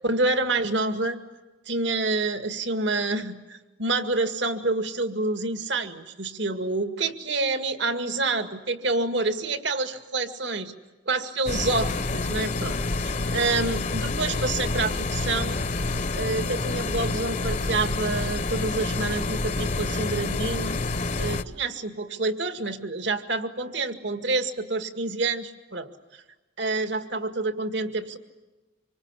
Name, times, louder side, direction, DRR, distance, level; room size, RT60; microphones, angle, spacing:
voice 1, 0.0-1.2 1.7-10.7 11.1-12.8 13.0-15.6 16.1-20.8 21.2-26.2 26.6-28.2, right 3 dB, 65° right, 8 dB, 2.0 m, -28 dB
sound 1, 11.5-21.4, left 3 dB, 40° left, 0.9 m, -28 dB
26.0 x 26.0 x 8.4 m, 1.2 s
head